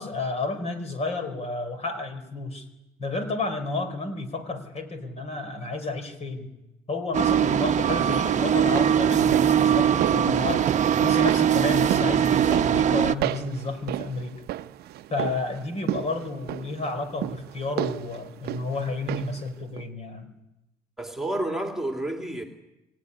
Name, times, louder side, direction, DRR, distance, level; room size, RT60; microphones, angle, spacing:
voice 1, 0.0-2.6 3.0-6.5 6.9-10.7 11.0-14.4 15.1-20.3, left 3 dB, 40° left, 8 dB, 4.5 m, -31 dB
sound 1, 7.1-13.1, right 9 dB, 45° right, 1.0 m, -21 dB
sound 2, 8.5-19.5 19.8-19.9, right 13 dB, 70° right, 0.8 m, -34 dB
voice 2, 21.0-22.4, right 1 dB, ahead, 3 dB, 2.9 m, -30 dB
24.5 x 16.5 x 10.0 m, 0.95 s
cardioid pair, 110°, 17 cm